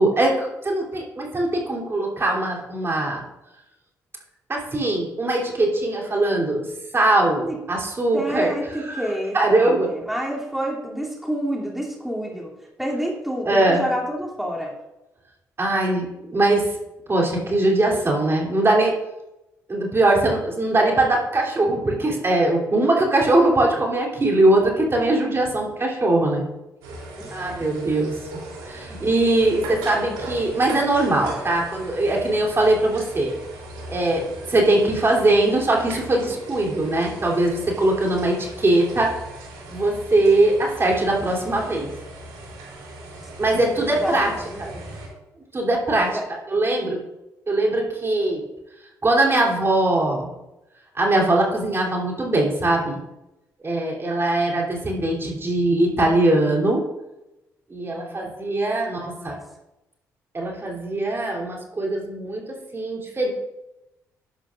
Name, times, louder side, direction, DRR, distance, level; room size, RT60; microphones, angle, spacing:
voice 1, 0.0-3.2 4.5-6.7 6.9-8.6 8.8-9.9 13.4-13.8 15.6-16.7 17.1-18.9 19.7-26.4 27.3-33.3 33.9-39.1 39.7-41.9 43.4-44.7 45.5-46.2 46.5-47.0 47.5-48.4 49.0-50.3 50.9-53.0 53.6-56.8 57.7-59.4 60.3-63.3, right 2 dB, 35° right, -1 dB, 3.1 m, -21 dB
voice 2, 8.1-14.7 27.1-27.5 43.5-44.8 46.1-46.3 57.9-58.3 58.9-59.4, equal, 5° right, -3 dB, 2.8 m, -29 dB
sound 1, 26.8-45.1, right 1 dB, 85° right, 3.0 m, -38 dB
11.5 x 11.5 x 2.5 m, 0.96 s
hypercardioid pair, 55°, 7 cm